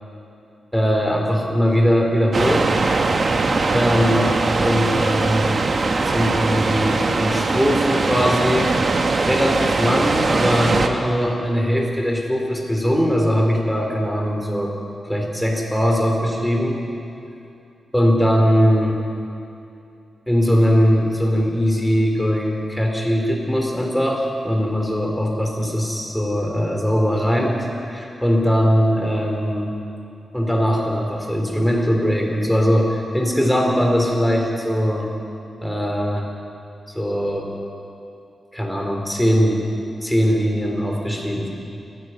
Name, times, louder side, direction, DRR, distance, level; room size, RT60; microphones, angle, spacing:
voice 1, 0.7-2.7 3.7-4.3 4.6-5.7 6.1-8.7 9.2-14.7 15.0-16.8 17.9-19.0 20.3-29.7 30.3-35.1 35.6-36.3 36.9-37.5 38.5-39.6 40.0-41.5, equal, 5° left, 1 dB, 3.6 m, -20 dB
sound 1, 2.3-10.9, right 3 dB, 45° right, 1.5 m, -20 dB
28.0 x 10.5 x 9.3 m, 2.7 s
wide cardioid pair, 120°, 0 cm